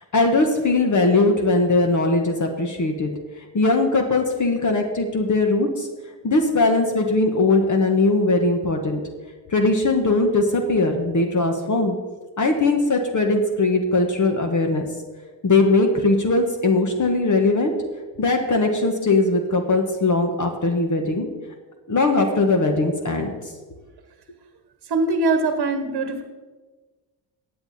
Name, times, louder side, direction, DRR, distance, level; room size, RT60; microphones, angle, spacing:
voice 1, 0.1-3.1 3.4-5.9 6.2-9.0 9.5-11.9 12.4-14.9 15.4-17.7 18.2-21.3 21.9-23.3, left 2 dB, 40° left, 3 dB, 1.5 m, -20 dB
voice 2, 24.8-26.2, right 3 dB, 50° right, 7 dB, 1.4 m, -22 dB
15.0 x 8.6 x 4.3 m, 1.3 s
cardioid pair, 75°, 48 cm